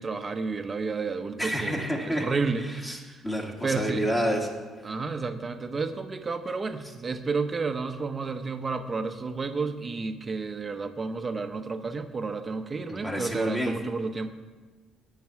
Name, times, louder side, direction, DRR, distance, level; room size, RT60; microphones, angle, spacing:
voice 1, 0.0-3.2 3.6-4.1 4.8-14.3, right 4 dB, 25° right, 7 dB, 0.8 m, -31 dB
voice 2, 1.4-2.3 2.8-3.0 3.2-4.5 12.9-13.7, equal, 10° left, 0 dB, 1.7 m, -28 dB
11.0 x 5.8 x 8.4 m, 1.3 s
cardioid pair, 130°, 0 cm